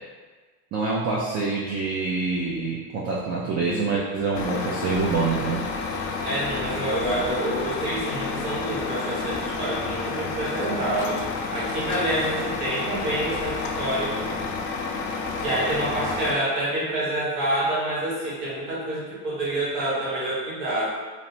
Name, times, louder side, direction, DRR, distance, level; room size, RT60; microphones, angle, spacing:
voice 1, 0.7-5.6, right 4 dB, 35° right, -4 dB, 0.4 m, -26 dB
Truck, 4.3-16.3, left 4 dB, 50° left, 0.4 m, -30 dB
voice 2, 6.2-11.2 11.5-14.3 15.4-20.9, right 1 dB, 80° right, -7 dB, 1.4 m, -27 dB
sound 1, 6.7-7.7 11.2-12.4, left 1 dB, 65° right, 1.3 m, -44 dB
3.0 x 2.0 x 2.7 m, 1.4 s
supercardioid pair, 100°, 46 cm